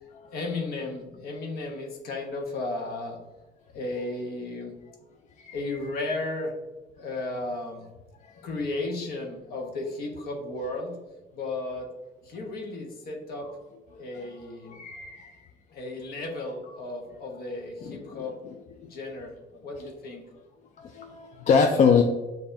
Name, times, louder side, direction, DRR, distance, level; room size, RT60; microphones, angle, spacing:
voice 1, 0.3-3.2 3.7-4.7 5.5-6.5 7.0-7.9 8.4-10.9 11.3-11.9 12.3-13.5 14.0-14.8 15.7-18.4 18.8-20.2, left 2 dB, 65° left, 2 dB, 1.0 m, -34 dB
voice 2, 5.4-5.8 8.4-8.5 12.3-12.4 13.4-13.5 13.9-14.0 14.6-15.3 16.7-16.8 17.8-18.9 20.8-22.0, left 6 dB, 45° left, 4 dB, 0.4 m, -25 dB
6.9 x 2.6 x 2.6 m, 1.1 s
cardioid pair, 110°, 17 cm